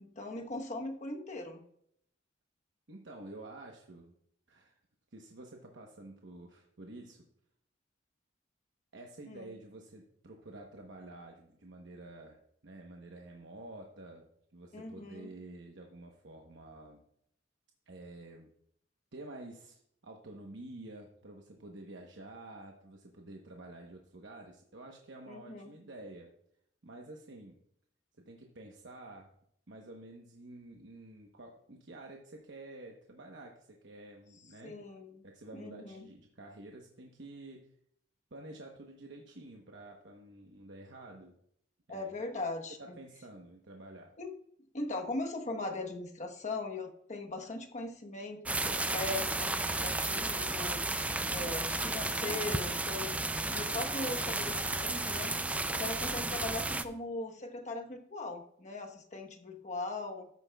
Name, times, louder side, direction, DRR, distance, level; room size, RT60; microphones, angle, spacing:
voice 1, 0.0-1.6 9.3-9.5 14.7-15.3 25.3-25.7 34.6-35.2 35.5-36.0 41.9-43.0 44.2-44.3 44.7-50.8 51.3-53.2 53.5-55.3 55.7-60.3, left 2 dB, 40° left, 3 dB, 1.1 m, -39 dB
voice 2, 2.9-4.1 4.5-4.8 5.1-7.2 8.9-14.3 14.5-17.0 17.9-18.5 19.1-26.3 26.8-27.6 28.2-29.3 29.7-34.8 35.2-37.7 38.3-41.3 41.9-42.1 42.8-44.1, right 2 dB, 70° right, 1 dB, 1.0 m, -50 dB
sound 1, 48.4-56.8, right 2 dB, 5° right, 0.4 m, -33 dB
13.0 x 9.5 x 2.3 m, 0.70 s
head